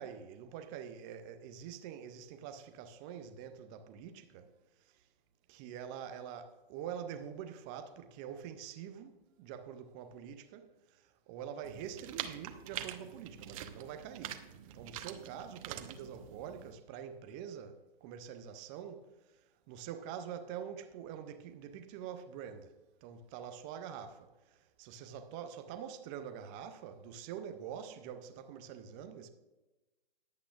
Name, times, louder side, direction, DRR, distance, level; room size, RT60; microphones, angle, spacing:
voice 1, 0.0-4.5 5.5-14.4 14.7-19.4 19.7-22.7 23.0-29.3, right 8 dB, 10° right, 0.3 m, -45 dB
sound 1, 11.6-16.7, right 11 dB, 35° right, 0.9 m, -45 dB
20.5 x 8.4 x 2.4 m
figure-of-eight pair, 125°, 29 cm